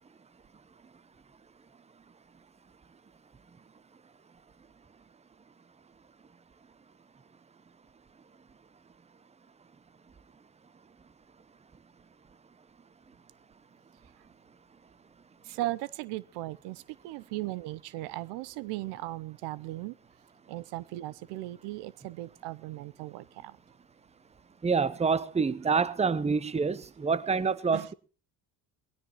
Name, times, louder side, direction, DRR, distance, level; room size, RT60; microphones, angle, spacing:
voice 1, 15.4-20.0 20.5-23.6 27.7-27.9, right 17 dB, 80° right, 0.6 m, -37 dB
voice 2, 24.6-27.9, right 5 dB, 15° right, 0.7 m, -27 dB
20.5 x 16.5 x 3.0 m
supercardioid pair, 85°, 40 cm